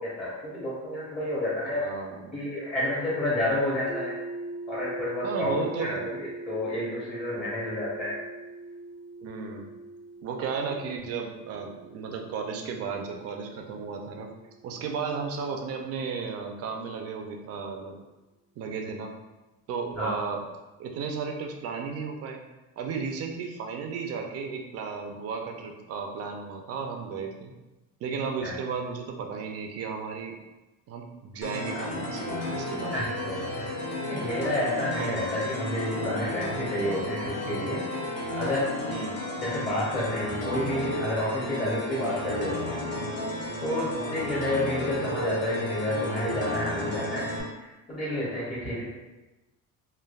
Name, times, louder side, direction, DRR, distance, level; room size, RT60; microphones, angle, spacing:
voice 1, 0.0-1.9 2.3-4.2 4.7-8.2 20.0-20.2 28.4-28.5 31.7-31.8 32.9-33.7 34.1-37.8 38.4-38.7 39.4-42.8 43.6-48.8, left 1 dB, 25° left, -8 dB, 0.7 m, -30 dB
voice 2, 1.7-2.4 5.2-6.1 9.2-9.7 10.2-14.4 14.6-18.0 18.6-19.2 19.7-20.4 20.8-22.4 22.8-27.5 28.0-30.3 30.9-33.0 35.0-35.2 38.8-39.2 43.8-44.0, right 5 dB, 45° right, 3 dB, 0.4 m, -34 dB
sound 1, 3.9-15.8, right 2 dB, 85° right, 0.7 m, -42 dB
sound 2, 31.4-47.4, left 1 dB, 80° left, 1.1 m, -33 dB
3.3 x 2.2 x 2.3 m, 1.1 s
cardioid pair, 150°, 34 cm